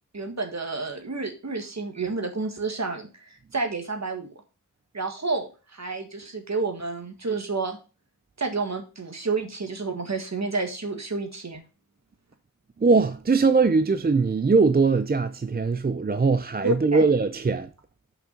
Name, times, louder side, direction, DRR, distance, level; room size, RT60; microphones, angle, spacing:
voice 1, 0.1-4.3 4.9-7.8 8.4-11.6 16.6-17.0, right 3 dB, 55° right, 1.6 m, -30 dB
voice 2, 12.8-17.7, right 4 dB, 30° right, 0.4 m, -21 dB
5.9 x 5.7 x 5.1 m
wide cardioid pair, 75°, 33 cm